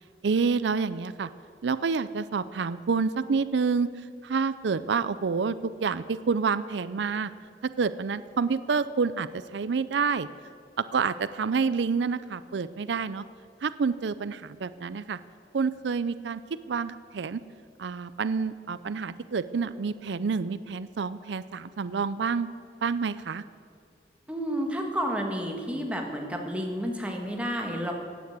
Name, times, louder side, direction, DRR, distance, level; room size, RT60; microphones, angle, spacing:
voice 1, 0.2-1.3 1.6-3.9 4.2-7.3 7.8-10.3 10.9-13.2 13.6-15.2 15.5-16.4 16.7-17.4 17.8-22.5 22.8-23.4, right 5 dB, 85° right, 15 dB, 0.5 m, -28 dB
voice 2, 24.3-27.9, equal, 5° right, 1 dB, 1.7 m, -30 dB
15.5 x 9.4 x 8.2 m, 2.3 s
head